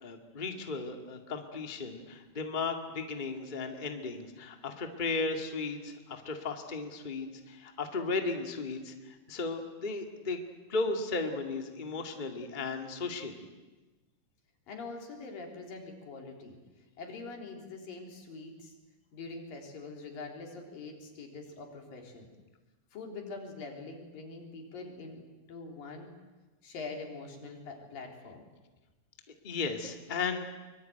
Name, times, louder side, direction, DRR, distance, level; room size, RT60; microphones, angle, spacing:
voice 1, 0.0-10.4 10.7-13.5 29.4-30.5, left 3 dB, 20° left, 4 dB, 1.6 m, -35 dB
voice 2, 14.7-18.7 19.1-22.3 22.9-25.2 25.5-26.1 26.6-28.5, left 3 dB, 90° left, 2 dB, 5.3 m, -44 dB
24.0 x 24.0 x 9.2 m, 1.2 s
omnidirectional pair, 3.9 m